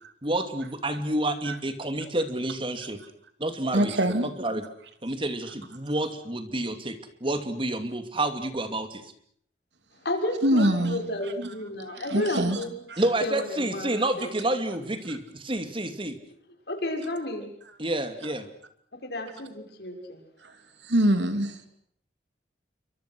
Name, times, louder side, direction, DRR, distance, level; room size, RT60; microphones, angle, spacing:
voice 1, 0.2-3.0 3.4-3.9 4.2-4.6 5.0-9.0 13.0-16.2 17.8-18.5, right 1 dB, 30° right, 9 dB, 2.7 m, -29 dB
voice 2, 3.7-4.3 10.4-11.0 11.4-11.5 11.9-12.6 12.9-13.0 20.4-20.5 20.8-21.7, right 1 dB, 90° right, 9 dB, 3.0 m, -24 dB
voice 3, 10.0-12.7 13.2-14.3 16.7-17.5 19.0-20.2, left 1 dB, 70° left, 3 dB, 6.4 m, -32 dB
28.5 x 24.5 x 6.4 m, 0.67 s
head